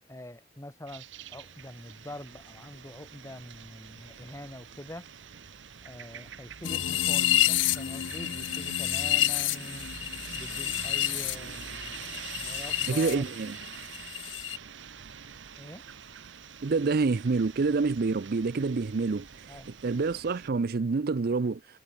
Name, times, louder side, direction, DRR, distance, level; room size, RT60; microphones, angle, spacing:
voice 1, 0.1-5.1 5.8-9.9 10.3-13.2 15.6-15.8 19.5-19.7, left 1 dB, 15° left, 2.8 m, -45 dB
sound 1, 0.9-20.5, right 7 dB, 80° right, 0.9 m, -45 dB
sound 2, 6.6-13.1 13.4-14.6, left 13 dB, 90° left, 0.5 m, -29 dB
voice 2, 12.9-13.6 16.6-19.3 19.8-21.6, right 4 dB, 55° right, 0.5 m, -27 dB
head